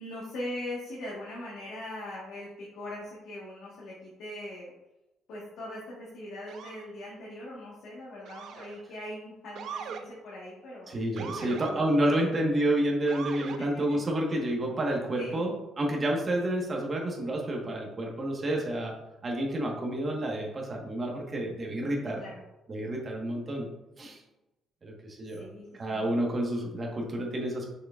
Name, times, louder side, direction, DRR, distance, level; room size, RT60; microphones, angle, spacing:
voice 1, 0.0-4.7 5.3-10.9 11.3-12.5 13.6-14.0 15.2-15.4 22.2-22.4 25.2-26.1 26.5-26.6, left 1 dB, 70° left, -6 dB, 1.4 m, -41 dB
Motor vehicle (road) / Siren, 6.5-6.9 8.3-8.8 9.6-10.0 11.2-11.7 13.1-13.6, right 7 dB, 60° right, 0.5 m, -40 dB
voice 2, 10.9-18.9 19.2-22.2 22.7-23.7 24.0-24.2 24.8-25.5 25.7-27.7, right 1 dB, 25° right, -1 dB, 1.3 m, -29 dB
6.5 x 6.2 x 2.5 m, 0.97 s
cardioid pair, 160°, 0 cm